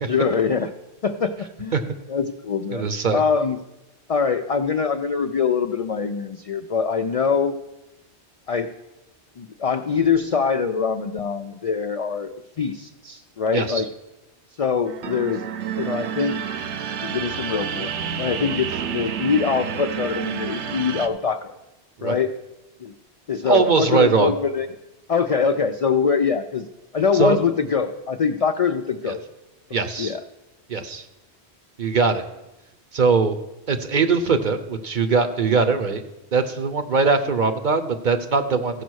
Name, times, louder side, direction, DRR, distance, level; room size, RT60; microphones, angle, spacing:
voice 1, 0.1-0.7 1.0-1.8 2.1-2.9 3.1-3.6 4.1-7.6 8.5-8.7 9.4-13.9 14.6-15.5 15.8-16.4 17.0-17.9 18.2-21.5 22.0-22.4 22.8-22.9 23.3-24.7 25.1-26.7 26.9-29.2 29.7-30.2, left 6 dB, 65° left, 7 dB, 0.3 m, -23 dB
voice 2, 2.7-3.2 13.5-13.8 22.0-22.2 23.5-24.3 27.1-27.4 29.1-29.2 29.7-30.1 30.7-31.0 31.8-32.2 32.9-33.4 33.7-36.0 36.3-38.8, right 4 dB, 50° right, 8 dB, 0.8 m, -21 dB
sound 1, 14.8-21.1, right 8 dB, 90° right, 1.0 m, -29 dB
15.0 x 5.1 x 6.3 m, 0.97 s
omnidirectional pair, 1.1 m